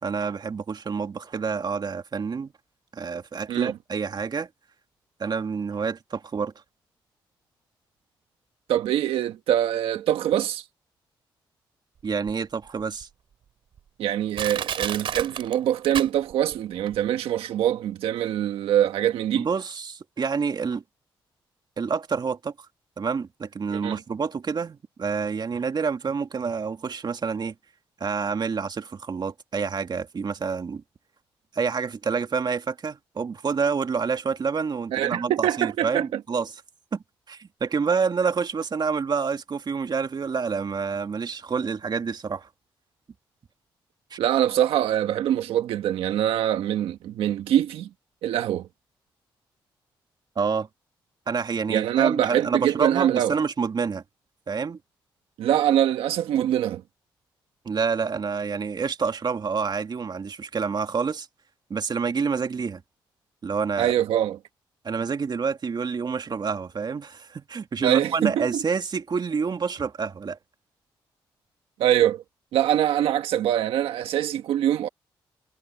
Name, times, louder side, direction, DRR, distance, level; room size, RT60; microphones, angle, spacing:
voice 1, 0.0-2.5 2.9-4.5 5.2-6.5 12.0-13.1 19.3-20.8 21.8-22.5 23.0-27.5 28.0-30.8 31.5-36.5 36.9-42.5 44.1-44.2 50.4-50.7 51.3-54.0 54.5-54.8 57.7-61.3 61.7-62.8 63.4-63.9 64.8-70.4, right 5 dB, 50° right, 2.2 m, -28 dB
voice 2, 8.7-10.6 14.0-19.5 23.7-24.0 34.9-36.1 44.2-47.9 48.2-48.7 51.7-53.3 55.4-56.8 63.8-64.4 67.8-68.6 71.8-72.2 72.5-74.9, right 11 dB, 90° right, 1.5 m, -24 dB
Crushing, 12.3-12.4 13.0-13.1 13.8-13.9 14.3-16.5 16.9-17.0, right 8 dB, 70° right, 2.9 m, -31 dB
supercardioid pair, 60°, 9 cm